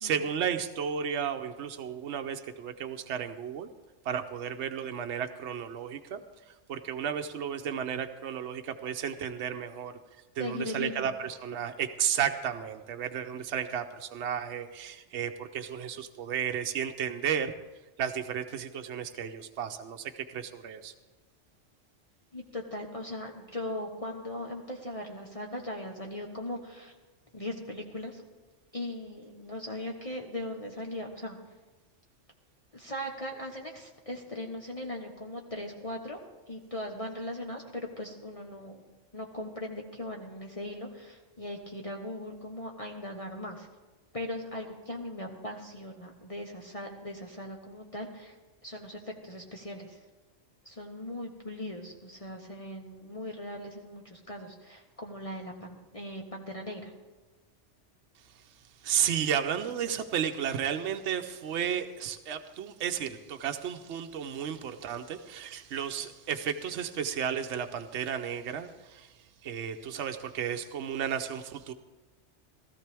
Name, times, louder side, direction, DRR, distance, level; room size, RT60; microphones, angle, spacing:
voice 1, 0.0-3.7 4.0-6.2 6.7-9.9 10.4-17.5 18.0-20.9 58.8-69.1 69.4-71.7, right 8 dB, 75° right, 6 dB, 1.0 m, -33 dB
voice 2, 10.4-11.1 22.3-26.9 27.3-28.2 28.7-31.4 32.7-36.2 36.5-43.7 44.1-48.4 48.6-50.0 50.6-56.9, left 1 dB, 30° left, 1 dB, 1.1 m, -39 dB
17.0 x 13.5 x 3.4 m, 1.2 s
omnidirectional pair, 1.2 m